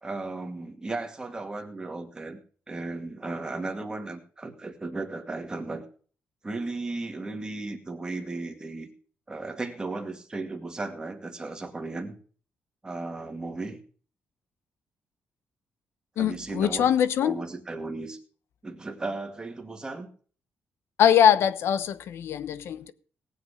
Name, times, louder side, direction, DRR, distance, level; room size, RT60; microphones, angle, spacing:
voice 1, 0.0-2.4 2.7-5.8 6.4-8.9 9.3-12.1 12.8-13.8 16.2-16.9 17.2-18.2 18.6-20.1, right 3 dB, 15° right, 2.2 m, -35 dB
voice 2, 16.2-17.4 21.0-22.9, left 9 dB, 75° left, 0.9 m, -22 dB
18.0 x 8.1 x 5.0 m
cardioid pair, 120°, 4 cm